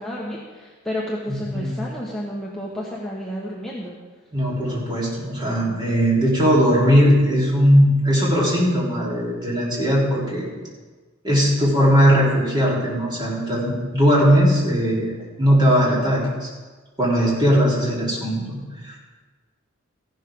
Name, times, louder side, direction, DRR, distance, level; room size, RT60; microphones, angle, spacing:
voice 1, 0.0-3.9, equal, ahead, -6 dB, 1.3 m, -31 dB
voice 2, 1.3-1.7 4.3-10.5 11.2-15.1 15.4-16.5 17.0-19.0, equal, 20° right, -6 dB, 3.8 m, -19 dB
15.0 x 12.0 x 3.8 m, 1.3 s
head